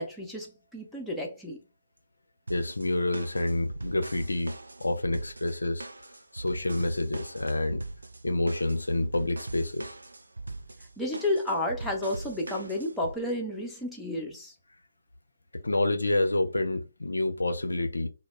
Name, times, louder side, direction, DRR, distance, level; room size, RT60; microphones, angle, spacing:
voice 1, 0.0-1.6 11.0-14.5, left 1 dB, 5° left, 0.5 m, -31 dB
voice 2, 2.5-5.9 6.3-7.8 8.2-10.0 15.6-18.1, left 2 dB, 75° left, 0.4 m, -28 dB
sound 1, 2.5-13.2, right 2 dB, 70° right, 0.4 m, -41 dB
2.0 x 2.0 x 3.1 m
figure-of-eight pair, 140°, 0 cm